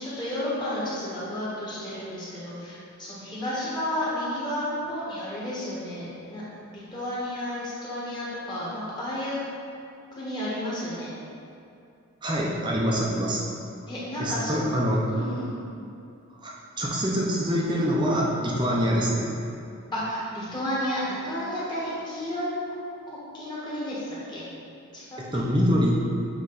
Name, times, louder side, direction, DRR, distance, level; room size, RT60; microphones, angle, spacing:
voice 1, 0.0-6.4 6.7-9.4 10.2-11.1 13.9-14.6 15.1-15.5 19.9-22.5 23.1-24.0 24.3-24.4 24.9-25.2, left 1 dB, 20° left, -9 dB, 1.4 m, -32 dB
voice 2, 12.2-13.4 14.2-15.1 16.4-19.3 25.2-26.0, equal, 20° right, -3 dB, 0.6 m, -25 dB
7.6 x 3.2 x 3.9 m, 2.6 s
head